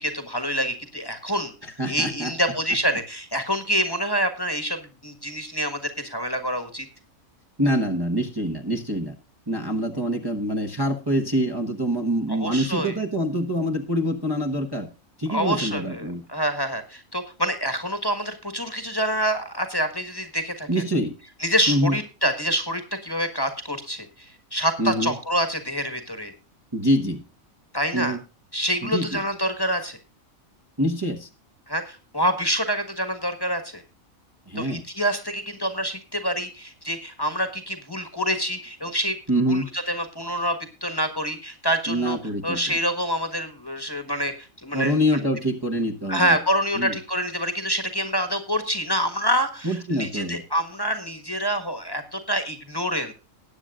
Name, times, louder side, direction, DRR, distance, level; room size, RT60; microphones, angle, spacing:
voice 1, 0.0-1.5 1.9-6.9 12.3-13.0 15.3-20.8 21.4-26.3 27.7-28.2 28.5-30.0 31.7-33.8 34.5-39.2 39.5-40.6 40.8-42.2 42.4-45.2 46.1-53.1, equal, 15° left, 6 dB, 1.5 m, -26 dB
voice 2, 1.6-2.3 7.6-9.1 9.5-14.9 15.2-16.2 20.7-21.1 21.7-21.9 24.8-25.1 26.7-27.2 27.9-28.2 28.8-29.2 30.8-31.3 34.5-34.8 39.3-39.7 41.9-42.6 44.7-46.4 46.7-47.0 49.6-50.4, equal, 20° right, 1 dB, 1.2 m, -25 dB
20.0 x 9.0 x 2.4 m, 0.32 s
omnidirectional pair, 1.4 m